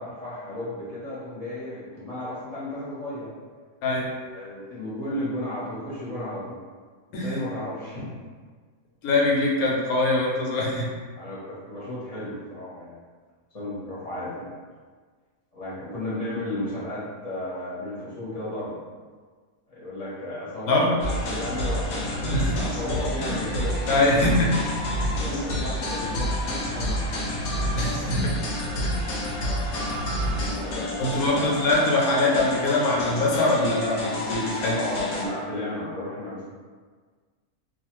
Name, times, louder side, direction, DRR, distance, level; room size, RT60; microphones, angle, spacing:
voice 1, 0.0-3.3 4.3-6.6 7.1-8.1 11.2-13.0 13.5-14.5 15.5-18.8 19.7-24.0 25.2-27.4 29.7-30.1 30.5-31.3 34.7-36.4, left 1 dB, 30° left, -9 dB, 0.8 m, -34 dB
voice 2, 3.8-4.1 7.1-7.4 9.0-10.9 20.7-21.0 22.2-22.6 23.2-23.4 23.9-24.6 27.8-28.5 28.8-29.1 31.0-34.8, left 2 dB, 90° left, -2 dB, 1.1 m, -23 dB
sound 1, 21.0-35.3, left 1 dB, 65° left, 0.8 m, -29 dB
2.4 x 2.3 x 3.0 m, 1.5 s
omnidirectional pair, 1.5 m